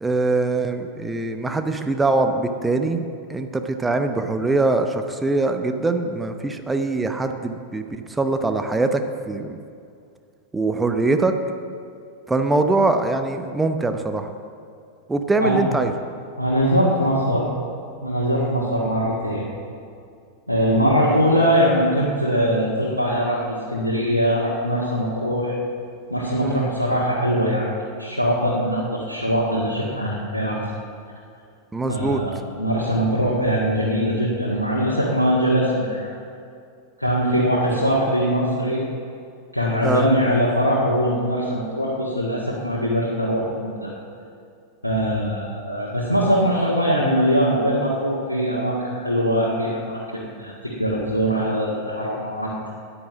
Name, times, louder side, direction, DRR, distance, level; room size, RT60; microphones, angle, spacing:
voice 1, 0.0-3.0 3.3-9.5 10.5-11.4 12.3-14.3 15.1-15.9 26.4-26.7 31.7-32.2 39.8-40.1, right 3 dB, 10° right, 7 dB, 0.8 m, -22 dB
voice 2, 16.4-17.5 18.0-19.5 20.5-25.5 26.1-27.7 28.0-30.6 31.9-36.1 37.0-38.8 39.5-43.9 44.8-52.7, equal, 85° left, -6 dB, 1.8 m, -22 dB
10.5 x 10.0 x 7.3 m, 2.4 s
figure-of-eight pair, 90°, 0 cm